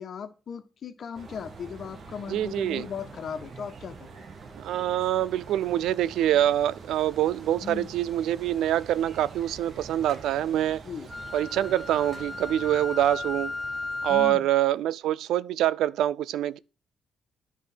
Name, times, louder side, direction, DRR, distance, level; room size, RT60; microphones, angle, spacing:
voice 1, 0.0-4.3 7.6-7.9 10.8-11.1 14.1-14.5, left 7 dB, 55° left, 1.5 m, -37 dB
sound 1, 1.1-14.3, right 4 dB, 50° right, 1.6 m, -46 dB
voice 2, 2.3-2.8 4.6-10.8 11.3-13.5 14.0-16.6, right 12 dB, 85° right, 0.5 m, -25 dB
Wind instrument woodwind instrument, 11.1-14.5, left 3 dB, 20° left, 0.5 m, -35 dB
11.0 x 4.8 x 7.6 m
cardioid pair, 90°, 0 cm